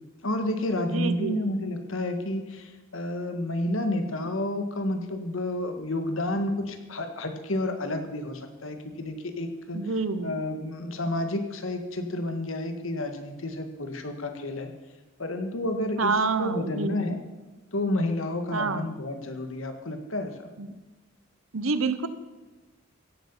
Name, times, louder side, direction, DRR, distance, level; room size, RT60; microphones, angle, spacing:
voice 1, 0.2-9.8 10.2-14.7 15.2-16.1 16.4-17.2 17.7-20.5, left 1 dB, 70° left, 6 dB, 1.7 m, -30 dB
voice 2, 0.9-1.4 9.7-10.3 16.0-17.1 18.5-18.8 20.6-20.7 21.5-22.1, right 4 dB, 75° right, 12 dB, 1.0 m, -27 dB
16.0 x 8.0 x 7.2 m, 1.2 s
head